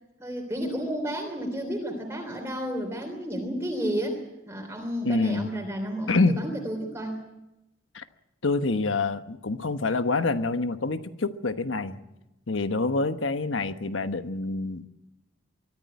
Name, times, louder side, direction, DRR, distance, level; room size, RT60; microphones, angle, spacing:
voice 1, 0.2-4.2 4.5-7.2, equal, 15° right, 1 dB, 3.3 m, -31 dB
voice 2, 5.0-5.5 6.1-6.4 7.9-8.0 8.4-12.0 12.5-14.9, left 3 dB, 75° left, 9 dB, 1.2 m, -26 dB
24.0 x 14.5 x 9.4 m, 0.95 s
head